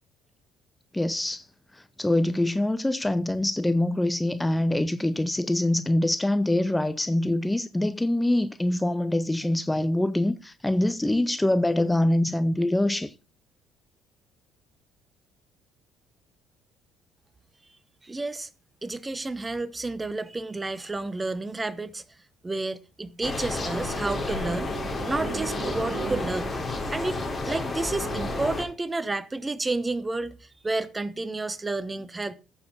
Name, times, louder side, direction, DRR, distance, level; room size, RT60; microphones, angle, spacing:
voice 1, 0.9-1.4 2.0-13.1, left 1 dB, 10° left, 0.6 m, -24 dB
voice 2, 18.0-18.5 18.8-22.0 22.4-24.7 25.0-26.5 26.9-32.4, right 2 dB, 20° right, 0.9 m, -31 dB
sound 1, 23.2-28.6, left 3 dB, 30° left, 3.9 m, -31 dB
sound 2, 23.6-28.6, right 5 dB, 40° right, 1.5 m, -38 dB
15.0 x 6.9 x 3.9 m
hypercardioid pair, 55°, 0 cm